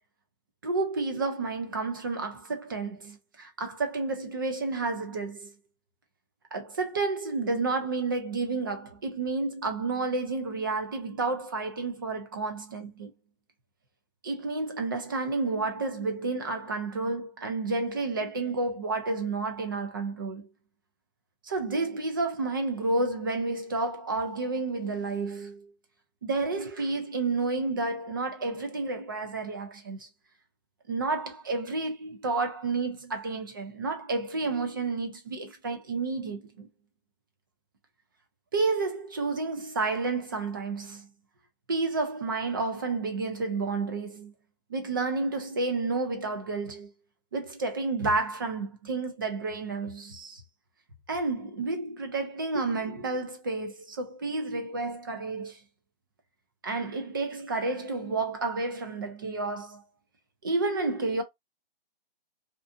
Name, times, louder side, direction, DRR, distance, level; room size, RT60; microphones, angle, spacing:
voice 1, 0.6-5.5 6.5-13.1 14.2-20.5 21.4-25.7 26.2-30.1 30.9-36.7 38.5-41.1 41.7-44.3 44.7-46.9 47.3-50.4 51.1-55.6 56.6-59.8 60.4-61.2, right 3 dB, 25° right, 0.4 m, -30 dB
2.5 x 2.3 x 2.6 m
hypercardioid pair, 160°, 29 cm